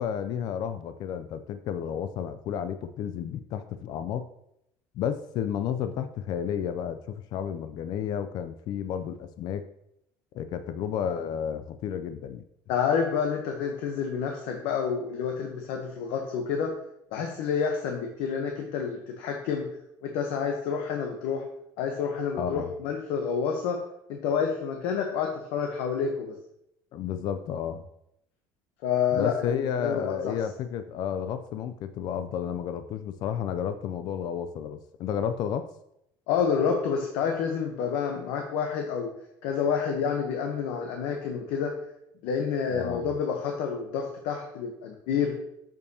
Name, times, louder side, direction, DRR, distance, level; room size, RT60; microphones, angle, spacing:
voice 1, 0.0-4.3 5.0-9.6 10.3-12.4 22.4-22.7 26.9-27.8 29.1-35.7 42.7-43.1, left 8 dB, 50° left, 10 dB, 0.3 m, -32 dB
voice 2, 12.7-16.7 17.1-19.7 20.0-21.4 21.8-23.8 24.1-26.3 28.8-30.3 36.3-39.1 39.4-41.7 42.2-45.3, left 6 dB, 90° left, 2 dB, 0.8 m, -28 dB
6.6 x 5.4 x 2.7 m, 0.78 s
cardioid pair, 155°, 9 cm